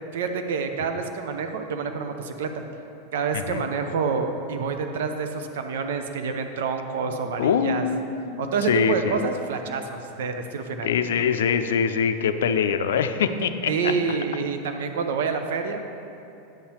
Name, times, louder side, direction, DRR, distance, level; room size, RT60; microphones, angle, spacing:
voice 1, 0.1-2.6 3.1-7.8 8.4-10.9 13.7-15.8, right 5 dB, 80° right, 6 dB, 0.7 m, -27 dB
voice 2, 7.1-9.2 10.8-14.2, left 7 dB, 85° left, 9 dB, 0.4 m, -24 dB
9.1 x 5.6 x 4.4 m, 2.8 s
hypercardioid pair, 110°, 0 cm